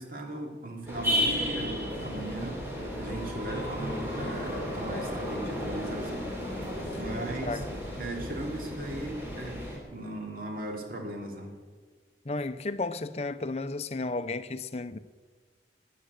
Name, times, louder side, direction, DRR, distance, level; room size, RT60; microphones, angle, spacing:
voice 1, 0.0-2.6 3.0-6.3 7.0-7.6 8.0-11.6, right 1 dB, 50° right, 2.6 m, -37 dB
sound 1, 0.9-9.8, equal, 15° right, 3.4 m, -33 dB
voice 2, 12.3-15.0, left 3 dB, 35° left, 0.6 m, -33 dB
13.0 x 9.4 x 9.6 m
head